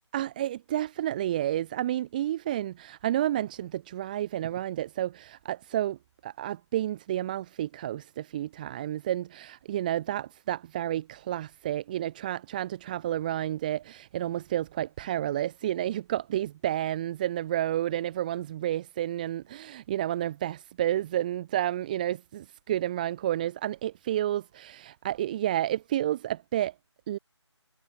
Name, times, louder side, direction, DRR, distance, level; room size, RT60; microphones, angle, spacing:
voice 1, 0.1-6.0 6.2-26.7 27.1-27.2, right 12 dB, 15° right, 3.7 m, -30 dB
figure-of-eight pair, 170°, 15 cm